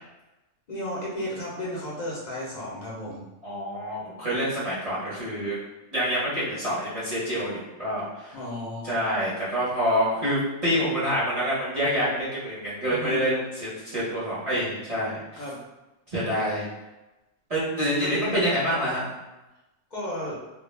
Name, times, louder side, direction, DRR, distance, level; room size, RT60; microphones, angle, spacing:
voice 1, 0.7-3.2 8.3-8.9 13.0-13.3 15.4-15.6 17.8-18.4 19.9-20.4, equal, 45° left, -6 dB, 0.6 m, -33 dB
voice 2, 3.4-5.6 5.9-8.4 8.8-15.4 16.1-16.7 17.5-19.1, equal, 35° right, -10 dB, 0.7 m, -27 dB
2.3 x 2.0 x 3.1 m, 1.0 s
omnidirectional pair, 1.3 m